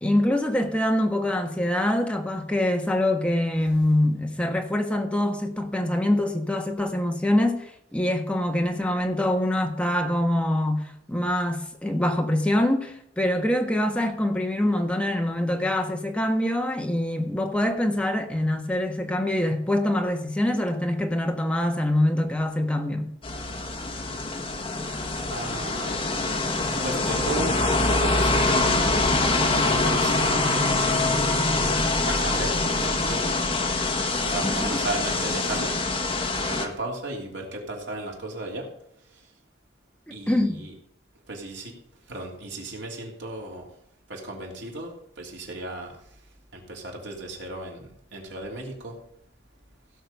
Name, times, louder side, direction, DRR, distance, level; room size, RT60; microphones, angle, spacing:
voice 1, 0.0-23.1 34.4-34.8 40.3-40.6, left 1 dB, 5° left, 1.4 m, -24 dB
sound 1, 23.2-36.7, left 2 dB, 30° left, 1.4 m, -24 dB
voice 2, 25.3-26.1 26.8-28.7 29.2-30.5 31.4-33.4 34.2-35.8 36.4-38.7 40.1-40.8 41.3-41.7 42.1-43.6 44.1-45.9 46.5-48.9, right 2 dB, 80° right, 3.3 m, -35 dB
16.5 x 6.5 x 5.4 m
head